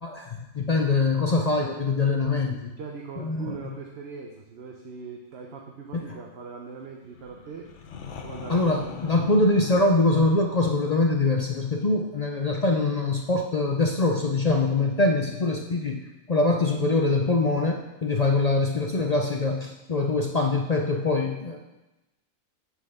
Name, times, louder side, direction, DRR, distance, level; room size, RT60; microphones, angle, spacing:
voice 1, 0.0-2.7 3.2-3.6 5.9-6.1 8.5-21.6, left 2 dB, 45° left, 2 dB, 0.5 m, -23 dB
voice 2, 2.8-7.7 8.0-9.3, right 5 dB, 55° right, 1 dB, 1.0 m, -41 dB
sound 1, 7.1-12.9, left 6 dB, 60° left, 1.1 m, -44 dB
6.4 x 5.6 x 6.5 m, 1.0 s
omnidirectional pair, 1.4 m